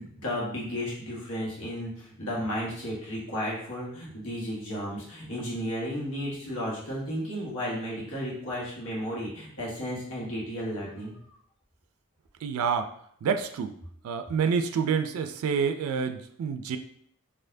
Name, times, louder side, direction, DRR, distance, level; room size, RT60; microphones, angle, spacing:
voice 1, 0.0-11.1, equal, 85° left, -5 dB, 1.3 m, -33 dB
voice 2, 12.4-12.9 13.2-13.7 14.0-16.8, right 6 dB, 85° right, 7 dB, 0.3 m, -28 dB
4.2 x 2.6 x 2.6 m, 0.66 s
head